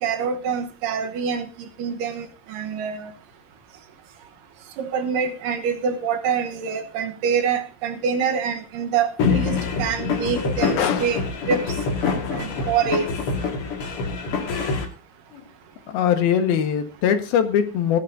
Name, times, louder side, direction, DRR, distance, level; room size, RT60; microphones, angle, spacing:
voice 1, 0.0-3.1 4.8-11.2 11.5-11.6 12.3-13.1, right 6 dB, 75° right, 7 dB, 2.7 m, -25 dB
sound 1, 9.2-14.9, left 4 dB, 45° left, 2.3 m, -25 dB
voice 2, 10.3-11.2 15.3-15.5 15.9-18.0, left 8 dB, 85° left, 7 dB, 3.3 m, -22 dB
18.0 x 12.5 x 2.7 m, 0.32 s
omnidirectional pair, 4.2 m